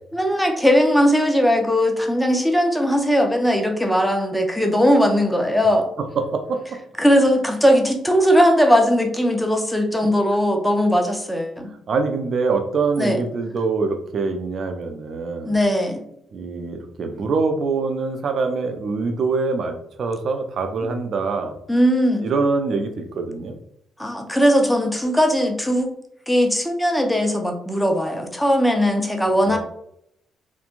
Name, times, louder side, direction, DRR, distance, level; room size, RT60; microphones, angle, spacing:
voice 1, 0.1-5.9 7.0-11.7 13.0-13.2 15.4-16.1 21.7-22.3 24.0-25.9 26.3-29.6, equal, 5° left, 3 dB, 0.5 m, -19 dB
voice 2, 6.2-6.8 11.9-15.6 16.3-21.5 22.2-23.6 29.5-29.6, right 4 dB, 55° right, 6 dB, 0.4 m, -24 dB
3.0 x 2.2 x 2.4 m, 0.74 s
cardioid pair, 90°, 0 cm